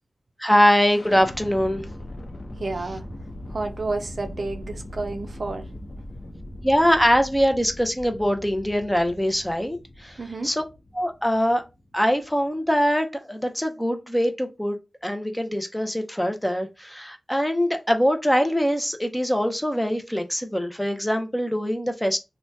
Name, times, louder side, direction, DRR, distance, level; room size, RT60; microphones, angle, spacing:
voice 1, 0.4-1.9 6.6-10.6 10.9-11.6 11.9-14.8 15.0-22.2, equal, 5° left, 0.5 m, -23 dB
sound 1, 0.9-12.7, left 1 dB, 70° left, 0.7 m, -40 dB
voice 2, 2.6-3.0 3.5-5.6 10.2-10.5, right 3 dB, 65° right, 0.4 m, -30 dB
2.7 x 2.2 x 3.3 m
wide cardioid pair, 85°, 0 cm